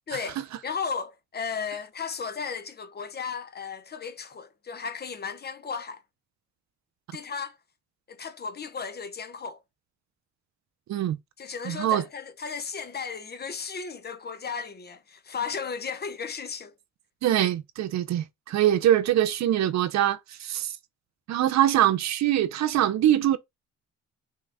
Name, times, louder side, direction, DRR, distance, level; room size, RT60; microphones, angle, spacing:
voice 1, 0.1-6.0 7.1-7.6 8.1-9.6 11.4-16.7, left 6 dB, 35° left, 0.8 m, -35 dB
voice 2, 11.7-12.0 17.2-20.7 21.3-23.4, right 12 dB, 65° right, 0.6 m, -23 dB
5.5 x 2.4 x 3.4 m
cardioid pair, 90°, 30 cm